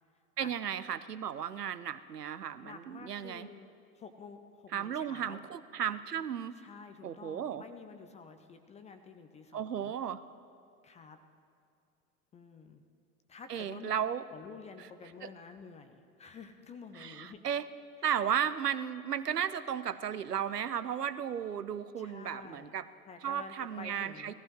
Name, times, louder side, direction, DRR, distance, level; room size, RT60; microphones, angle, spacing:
voice 1, 0.4-3.5 4.7-6.6 7.0-7.6 9.5-10.2 13.5-14.2 14.8-14.9 15.2-15.3 16.9-17.7 18.0-22.9 23.2-24.3, right 8 dB, 85° right, 14 dB, 0.6 m, -34 dB
voice 2, 2.6-5.4 6.6-10.0 10.8-11.2 12.3-12.8 13.3-13.9 14.3-17.4 18.1-18.2 22.0-22.7 23.1-24.3, left 5 dB, 15° left, 8 dB, 0.5 m, -50 dB
19.5 x 14.5 x 3.1 m, 2.4 s
figure-of-eight pair, 85°, 46 cm